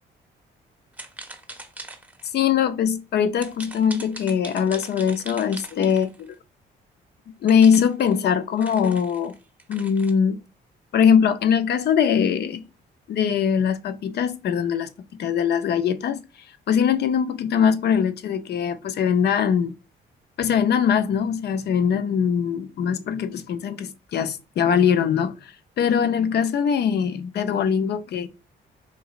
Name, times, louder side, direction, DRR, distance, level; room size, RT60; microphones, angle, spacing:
sound 1, 0.9-2.3 3.4-6.3 7.5-10.1, right 2 dB, 10° right, 0.7 m, -41 dB
voice 1, 2.3-6.3 7.4-9.3 9.7-10.4 10.9-12.6 13.1-14.9 15.2-16.2 16.7-19.7 20.4-28.3, left 7 dB, 55° left, 0.4 m, -22 dB
3.9 x 2.9 x 2.4 m
cardioid pair, 90°, 20 cm